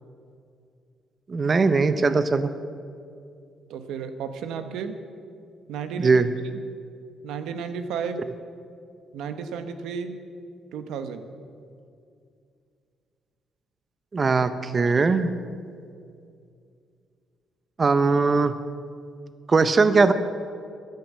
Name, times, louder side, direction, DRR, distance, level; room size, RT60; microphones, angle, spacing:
voice 1, 1.3-2.5 6.0-6.3 14.1-15.3 17.8-18.5 19.5-20.1, right 4 dB, 35° right, 11 dB, 0.7 m, -20 dB
voice 2, 3.7-5.0 5.7-6.2 6.5-6.6 7.2-8.2 9.1-10.2 10.7-11.3, right 6 dB, 85° right, 9 dB, 1.0 m, -33 dB
14.0 x 10.5 x 7.4 m, 2.4 s
cardioid pair, 90°, 0 cm